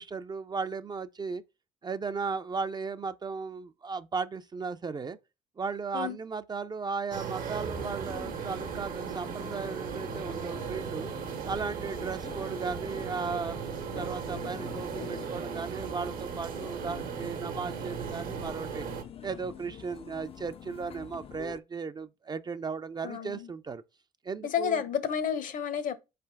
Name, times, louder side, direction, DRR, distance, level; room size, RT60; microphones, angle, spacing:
voice 1, 0.0-1.4 1.8-5.2 5.6-11.1 11.5-18.8 19.2-23.8 24.2-24.8, right 5 dB, 25° right, 0.4 m, -36 dB
sound 1, 7.1-19.0, right 7 dB, 60° right, 0.9 m, -37 dB
sound 2, 7.7-21.6, left 8 dB, 35° left, 0.4 m, -46 dB
voice 2, 23.0-23.5 24.4-26.0, left 8 dB, 55° left, 0.7 m, -31 dB
4.3 x 3.3 x 3.4 m
hypercardioid pair, 65°, 16 cm